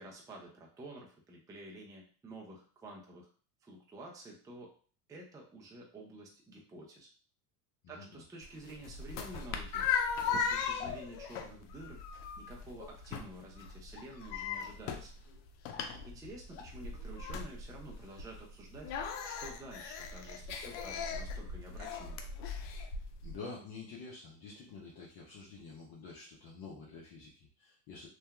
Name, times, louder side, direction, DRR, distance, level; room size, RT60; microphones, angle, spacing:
voice 1, 0.0-3.3 3.6-4.7 5.1-7.1 7.9-9.9 10.3-12.0 12.4-15.1 16.1-18.9 19.2-22.2, right 1 dB, 10° right, -1 dB, 0.4 m, -50 dB
voice 2, 7.8-8.2 23.2-28.1, left 4 dB, 45° left, -5 dB, 0.8 m, -48 dB
sound 1, 8.4-23.4, left 6 dB, 85° left, 0.6 m, -38 dB
2.7 x 2.3 x 2.3 m, 0.42 s
supercardioid pair, 100°, 50 cm